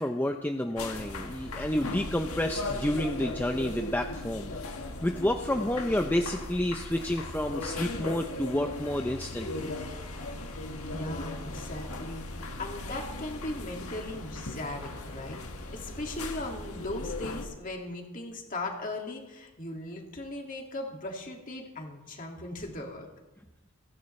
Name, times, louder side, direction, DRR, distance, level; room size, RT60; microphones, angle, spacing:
voice 1, 0.0-4.5 5.0-9.7, left 1 dB, 10° left, 4 dB, 0.5 m, -30 dB
taipei office, 0.8-17.4, left 2 dB, 90° left, 1.8 m, -38 dB
voice 2, 10.9-23.1, left 1 dB, 40° left, 1 dB, 2.2 m, -38 dB
29.5 x 11.0 x 3.3 m, 1.1 s
head